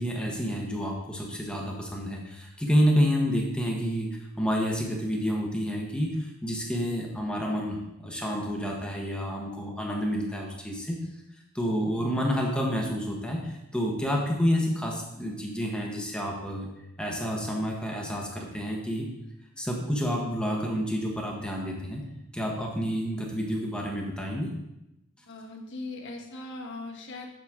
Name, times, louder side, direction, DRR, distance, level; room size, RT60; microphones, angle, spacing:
voice 1, 0.0-11.0 11.5-16.7 17.0-19.1 19.6-22.0 22.3-24.5, equal, 5° left, -1 dB, 1.0 m, -29 dB
voice 2, 25.3-27.3, left 2 dB, 55° left, 0 dB, 1.3 m, -39 dB
7.4 x 7.3 x 3.6 m, 0.89 s
head